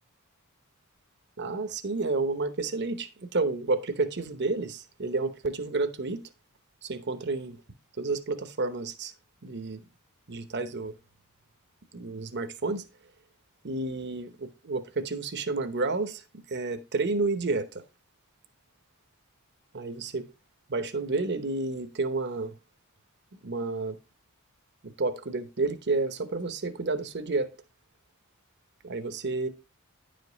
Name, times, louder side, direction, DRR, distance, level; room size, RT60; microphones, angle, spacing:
voice 1, 1.4-6.2 6.8-7.6 8.0-9.1 9.4-9.8 10.3-10.9 11.9-12.8 13.6-17.8 19.7-20.3 20.7-22.5 23.4-24.0 24.8-27.5 28.8-29.5, right 3 dB, 50° right, 1.0 m, -30 dB
10.5 x 5.2 x 4.0 m
head